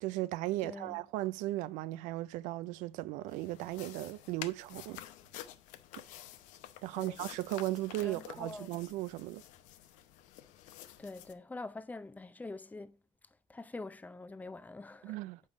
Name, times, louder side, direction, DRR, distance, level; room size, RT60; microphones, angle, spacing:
voice 1, 0.0-5.0 6.8-9.4 15.0-15.4, right 17 dB, 90° right, 0.4 m, -36 dB
voice 2, 0.6-1.0 7.0-7.2 8.0-8.8 11.0-13.0 13.5-15.2, left 3 dB, 10° left, 0.6 m, -45 dB
sound 1, 3.3-11.3, left 12 dB, 85° left, 0.8 m, -50 dB
8.0 x 5.4 x 4.7 m
cardioid pair, 120°, 13 cm